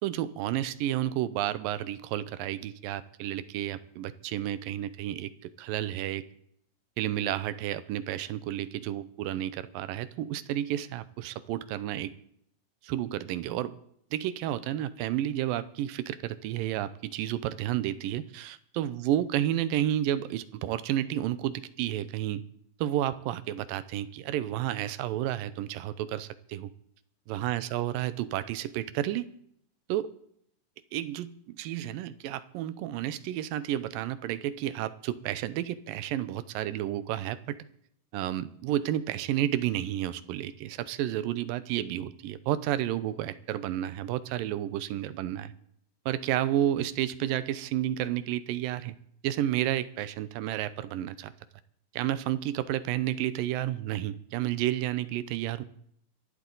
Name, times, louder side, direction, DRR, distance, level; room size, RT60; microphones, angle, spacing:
voice 1, 0.0-6.2 7.0-12.1 12.8-13.7 14.1-22.4 22.8-26.7 27.3-29.3 29.9-30.1 30.9-37.6 38.1-45.5 46.1-49.0 49.2-51.3 51.9-55.6, right 12 dB, 80° right, 14 dB, 2.3 m, -31 dB
25.0 x 11.5 x 4.0 m, 0.70 s
omnidirectional pair, 4.0 m